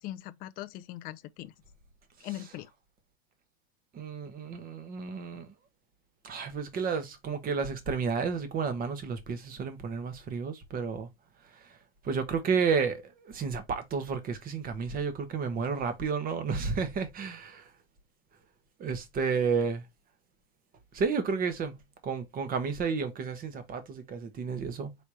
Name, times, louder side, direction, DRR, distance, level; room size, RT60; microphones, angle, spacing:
voice 1, 0.0-1.5 2.2-2.7, left 15 dB, 30° left, 0.4 m, -40 dB
voice 2, 3.9-5.5 6.2-11.1 12.0-17.7 18.8-19.8 20.9-21.8 22.0-25.0, right 5 dB, 25° right, 1.1 m, -31 dB
4.9 x 3.3 x 2.8 m
supercardioid pair, 135°, 33 cm